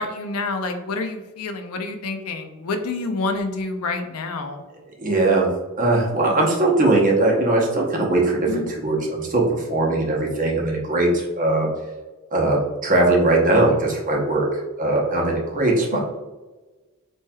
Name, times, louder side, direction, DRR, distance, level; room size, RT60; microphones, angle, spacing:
voice 1, 0.0-4.6 8.5-8.7 15.9-16.0, left 3 dB, 85° left, 6 dB, 0.6 m, -28 dB
voice 2, 5.0-5.5 5.8-11.7 12.3-14.5 14.8-16.0, right 2 dB, 35° right, -1 dB, 0.8 m, -20 dB
4.3 x 3.1 x 2.2 m, 1.2 s
head